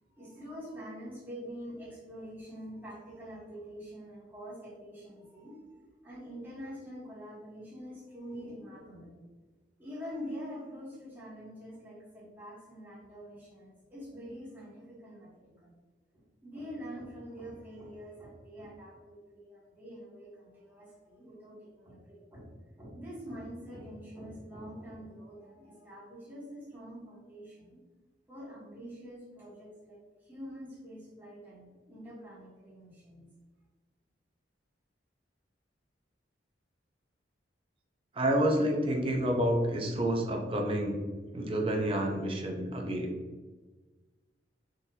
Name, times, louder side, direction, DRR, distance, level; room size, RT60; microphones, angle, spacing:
voice 1, 0.2-5.8 6.0-9.2 9.8-15.7 16.1-22.5 22.8-27.8 28.3-33.3, equal, 10° right, -11 dB, 1.3 m, -45 dB
voice 2, 38.2-41.0 41.3-43.1, right 1 dB, 30° right, 1 dB, 0.5 m, -29 dB
3.8 x 2.6 x 2.8 m, 1.3 s
head